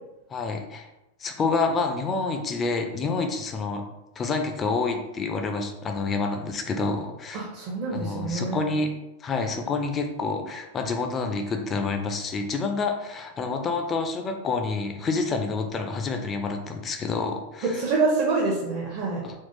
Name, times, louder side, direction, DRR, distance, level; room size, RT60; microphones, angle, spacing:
voice 1, 0.3-0.9 1.2-3.8 4.2-7.4 7.9-8.9 9.2-17.8 19.2-19.3, left 4 dB, 25° left, 4 dB, 0.4 m, -28 dB
voice 2, 7.3-8.6 17.6-19.3, right 3 dB, 45° right, -3 dB, 0.6 m, -26 dB
3.6 x 2.4 x 2.7 m, 0.97 s
figure-of-eight pair, 90°, 0 cm